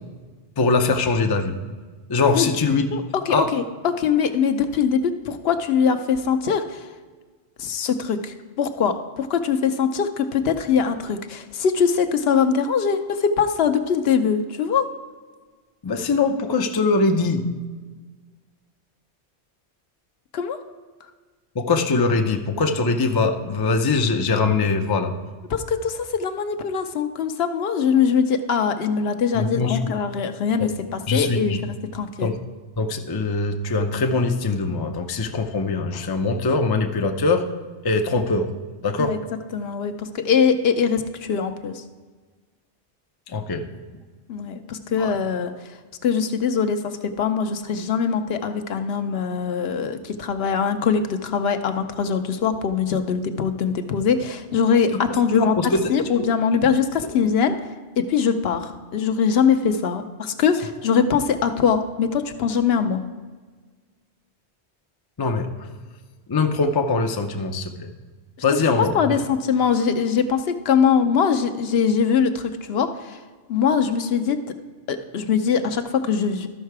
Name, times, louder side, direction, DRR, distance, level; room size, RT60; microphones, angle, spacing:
voice 1, 0.6-1.5 2.1-2.9 3.3-3.5 15.8-17.5 21.6-25.1 29.3-30.0 30.6-30.7 31.1-31.6 32.2-32.4 32.8-37.4 37.8-38.5 38.8-39.2 43.3-43.7 45.0-45.1 55.1-55.8 56.2-56.3 65.2-65.7 66.3-67.9 68.4-68.9, left 3 dB, 30° left, 4 dB, 0.4 m, -22 dB
voice 2, 2.9-6.9 7.6-14.9 20.3-20.6 25.5-32.3 39.0-39.2 39.5-41.8 44.3-45.8 46.0-57.6 58.0-63.0 68.9-73.2 73.5-74.4 74.9-76.5, left 6 dB, 65° left, 8 dB, 0.8 m, -22 dB
13.0 x 5.6 x 4.6 m, 1.4 s
omnidirectional pair, 1.1 m